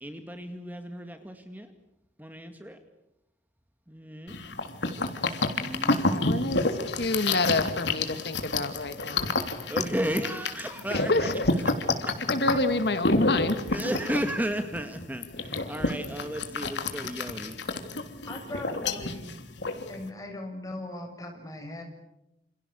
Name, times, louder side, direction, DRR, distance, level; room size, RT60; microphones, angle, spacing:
voice 1, 0.0-1.7 2.2-2.8 3.9-4.3 5.5-6.0 9.7-11.3 12.1-12.2 12.4-12.6 13.7-17.6, equal, 10° right, 6 dB, 2.0 m, -33 dB
sound 1, 4.3-20.1, left 3 dB, 85° left, 3.4 m, -29 dB
voice 2, 6.1-9.3 10.9-11.5 12.3-13.6, left 2 dB, 65° left, 9 dB, 1.9 m, -28 dB
voice 3, 18.3-19.4 19.9-21.8, left 1 dB, 20° left, 3 dB, 7.3 m, -39 dB
29.0 x 28.5 x 7.0 m, 0.90 s
head